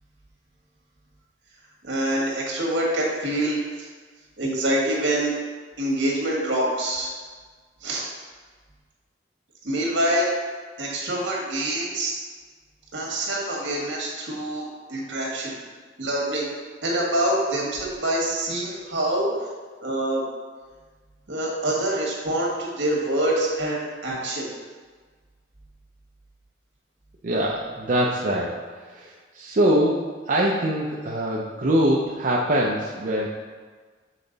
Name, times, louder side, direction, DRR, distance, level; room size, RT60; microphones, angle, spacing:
voice 1, 1.8-3.9 4.4-5.3 5.8-7.1 7.8-8.1 9.6-10.3 10.8-12.1 12.9-15.6 16.0-16.5 16.8-19.3 19.8-20.3 21.3-24.5, right 1 dB, 75° right, -3 dB, 1.7 m, -25 dB
voice 2, 27.2-28.6 28.9-33.3, right 1 dB, 45° right, -3 dB, 0.5 m, -23 dB
7.3 x 3.9 x 3.9 m, 1.5 s
head